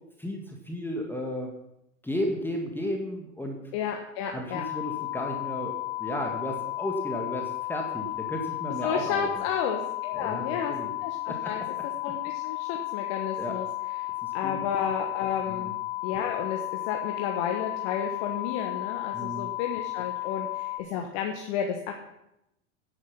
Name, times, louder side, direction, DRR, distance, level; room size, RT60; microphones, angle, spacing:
voice 1, 0.2-1.5 2.0-3.6 4.3-5.7 6.0-9.3 10.1-10.9 11.3-11.5 13.4-13.5 14.2-14.6 15.5-15.7 19.1-19.5, left 1 dB, 5° left, 1 dB, 2.0 m, -33 dB
voice 2, 3.7-4.6 8.8-10.7 11.0-11.6 12.0-13.7 14.0-14.1 14.3-15.7 16.0-16.6 16.9-22.0, left 7 dB, 55° left, 3 dB, 1.5 m, -32 dB
sound 1, 4.5-20.8, left 18 dB, 70° left, 2.1 m, -33 dB
10.5 x 9.8 x 5.8 m, 0.83 s
figure-of-eight pair, 80°, 37 cm